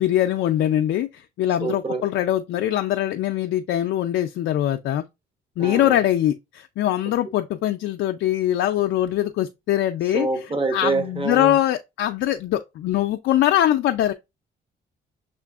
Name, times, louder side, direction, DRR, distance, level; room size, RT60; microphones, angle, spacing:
voice 1, 0.0-5.0 5.6-10.3 10.7-14.1, left 12 dB, 70° left, 0.4 m, -22 dB
voice 2, 1.6-2.1 5.6-6.0 10.1-11.6, right 3 dB, 25° right, 1.0 m, -26 dB
6.6 x 2.5 x 2.4 m
cardioid pair, 90°, 20 cm